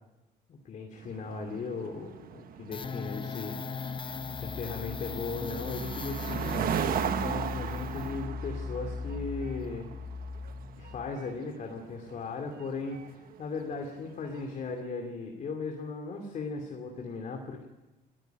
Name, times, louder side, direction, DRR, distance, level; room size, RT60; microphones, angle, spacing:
voice 1, 0.5-3.6 4.3-9.9 10.8-17.6, left 4 dB, 50° left, 3 dB, 2.8 m, -37 dB
sound 1, 1.0-14.5, right 8 dB, 60° right, 1.3 m, -38 dB
sound 2, 2.7-11.2, left 4 dB, 30° left, 0.8 m, -38 dB
20.0 x 14.5 x 9.3 m, 1.1 s
cardioid pair, 110°, 17 cm